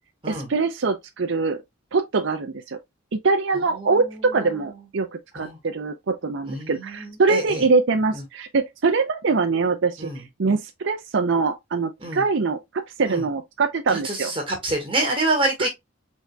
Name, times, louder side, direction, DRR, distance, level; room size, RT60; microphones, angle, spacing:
voice 1, 0.3-1.6 1.9-2.8 3.1-14.3 15.6-15.7, right 4 dB, 60° right, 0.5 m, -23 dB
voice 2, 3.5-4.7 5.3-5.6 6.5-7.6 8.1-8.2 10.0-10.2 12.0-12.2 13.1-13.3 13.9-15.7, right 2 dB, 25° right, 1.6 m, -27 dB
4.6 x 4.1 x 2.2 m
head